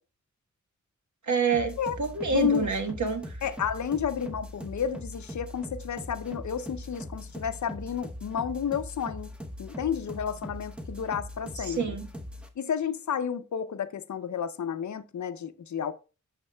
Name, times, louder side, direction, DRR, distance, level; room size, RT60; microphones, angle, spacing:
voice 1, 1.3-3.2 11.6-12.1, right 5 dB, 70° right, 1.2 m, -27 dB
sound 1, 1.5-12.5, equal, 5° right, 0.8 m, -41 dB
voice 2, 2.3-2.7 3.4-9.3 9.6-12.0 12.6-15.9, left 8 dB, 70° left, 0.6 m, -31 dB
10.5 x 6.5 x 2.2 m
wide cardioid pair, 125°, 30 cm